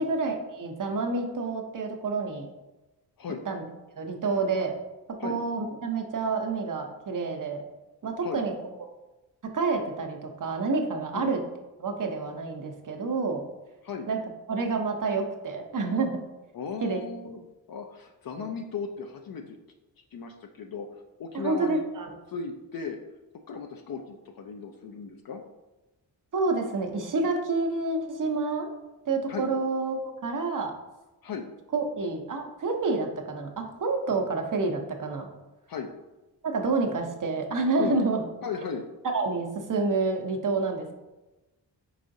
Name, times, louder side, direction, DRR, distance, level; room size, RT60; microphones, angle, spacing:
voice 1, 0.0-2.5 3.5-3.7 4.0-4.8 5.2-7.6 8.0-8.5 9.5-11.4 11.8-13.4 14.1-14.2 14.5-16.2 16.8-17.0 18.4-18.5 21.3-22.1 26.3-28.7 29.1-30.7 31.7-35.3 36.4-38.2 39.1-40.9, right 3 dB, 50° right, 4 dB, 0.8 m, -28 dB
voice 2, 16.5-19.6 20.1-20.9 21.2-21.8 22.3-23.0 23.5-25.4 29.3-29.5 31.2-31.5 35.7-35.9 37.8-38.0 38.4-38.8, left 5 dB, 55° left, 4 dB, 0.5 m, -36 dB
4.8 x 3.7 x 2.6 m, 1.0 s
cardioid pair, 70°, 42 cm